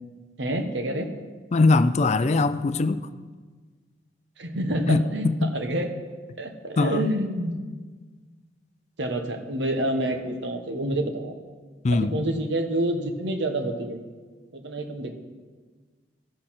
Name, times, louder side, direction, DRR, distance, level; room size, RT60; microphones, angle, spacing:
voice 1, 0.4-1.1 4.4-5.9 6.4-7.6 9.0-11.3 11.9-14.0 14.5-15.1, right 1 dB, 80° right, 5 dB, 1.2 m, -28 dB
voice 2, 1.5-3.0 4.9-5.6 6.8-7.1 11.8-12.1, left 3 dB, 40° left, 12 dB, 0.4 m, -21 dB
13.0 x 6.4 x 5.9 m, 1.4 s
head